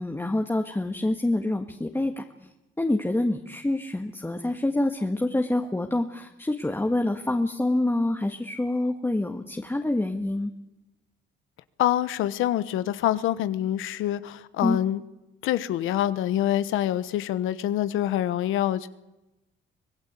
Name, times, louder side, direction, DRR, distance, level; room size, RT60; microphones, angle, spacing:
voice 1, 0.0-2.5 2.8-10.5 14.6-14.8, left 2 dB, 10° left, 3 dB, 1.7 m, -26 dB
voice 2, 11.8-15.0 15.4-18.9, left 12 dB, 90° left, 14 dB, 1.1 m, -26 dB
25.0 x 17.5 x 8.3 m, 0.99 s
cardioid pair, 90°, 20 cm